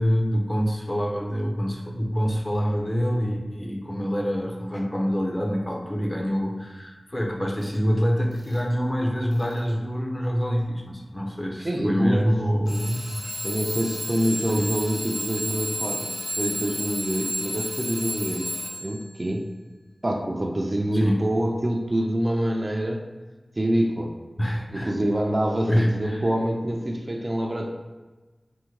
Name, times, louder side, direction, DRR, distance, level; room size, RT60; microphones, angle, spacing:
voice 1, 0.0-13.3 14.5-14.7 20.9-21.3 24.4-24.9 25.7-26.2, equal, 25° left, 0 dB, 0.5 m, -26 dB
Alarm / Clock, 7.6-7.8 8.3-8.7 9.3-9.7 10.6-10.7 12.7-19.1, left 1 dB, 55° left, 1.1 m, -32 dB
voice 2, 11.6-12.3 13.4-18.5 18.8-19.5 20.0-23.1 23.6-24.2 24.7-27.7, right 1 dB, 40° right, 2 dB, 0.4 m, -26 dB
3.4 x 2.1 x 3.0 m, 1.2 s
wide cardioid pair, 60°, 0 cm